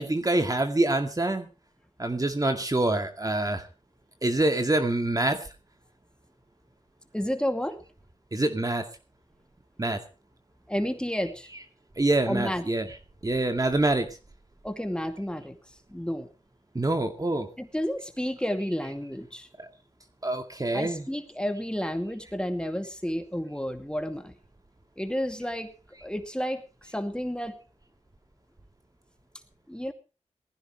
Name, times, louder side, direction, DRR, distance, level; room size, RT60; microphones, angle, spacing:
voice 1, 0.0-1.5 2.0-3.7 4.2-5.4 8.3-8.9 9.8-10.0 11.5-11.6 12.0-12.9 13.2-14.1 16.7-17.5 19.6-19.7 20.2-21.1, right 2 dB, 30° right, 6 dB, 2.2 m, -26 dB
voice 2, 7.1-7.8 10.7-11.5 12.3-12.6 14.6-15.6 15.9-16.3 17.6-19.5 20.7-24.3 25.0-25.7 26.0-27.5 29.7-29.9, equal, 10° left, 6 dB, 2.4 m, -31 dB
20.0 x 15.5 x 3.2 m, 0.33 s
cardioid pair, 55°, 12 cm